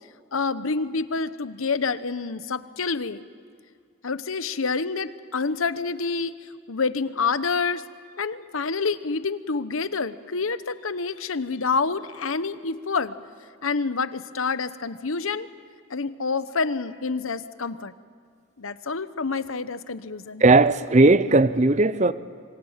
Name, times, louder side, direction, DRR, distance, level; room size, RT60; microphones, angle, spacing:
voice 1, 0.3-3.2 4.0-7.8 8.2-13.1 13.6-15.5 15.9-17.9 18.6-20.4, left 4 dB, 80° left, 1.0 m, -28 dB
voice 2, 20.4-22.1, right 3 dB, 35° right, 0.6 m, -17 dB
26.0 x 25.0 x 7.4 m
head